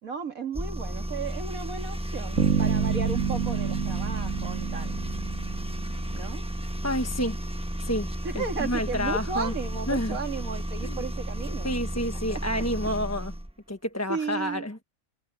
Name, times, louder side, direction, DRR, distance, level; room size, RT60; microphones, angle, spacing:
voice 1, 0.0-4.9 6.1-6.4 8.2-11.7 14.1-14.7, right 5 dB, 85° right, 2.7 m, -34 dB
sound 1, 0.5-13.5, right 1 dB, 5° right, 1.0 m, -33 dB
sound 2, 2.4-6.3, right 6 dB, 65° right, 2.0 m, -28 dB
voice 2, 6.8-7.4 7.8-8.1 8.3-9.5 9.9-10.2 10.8-11.0 11.6-13.3 13.7-14.8, equal, 10° left, 1.1 m, -29 dB
omnidirectional pair, 1.4 m